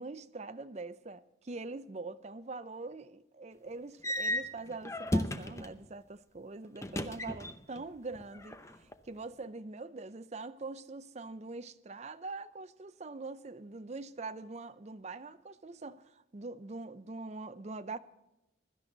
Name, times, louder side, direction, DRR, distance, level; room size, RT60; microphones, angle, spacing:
voice 1, 0.0-18.0, right 3 dB, 35° right, 0.5 m, -43 dB
sound 1, 4.0-5.8 6.8-7.8 8.1-8.9, left 1 dB, 15° left, 0.7 m, -34 dB
16.5 x 12.5 x 3.9 m
head